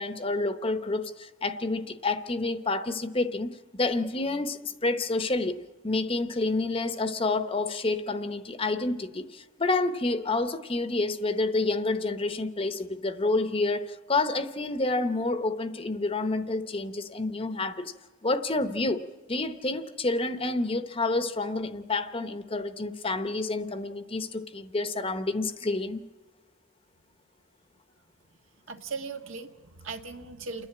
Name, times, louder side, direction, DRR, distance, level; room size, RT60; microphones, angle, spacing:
voice 1, 0.0-5.6 5.8-17.9 18.2-26.0, left 2 dB, 25° left, 10 dB, 0.9 m, -29 dB
voice 2, 28.7-30.7, right 4 dB, 75° right, 6 dB, 1.5 m, -38 dB
29.0 x 10.5 x 8.7 m, 1.3 s
head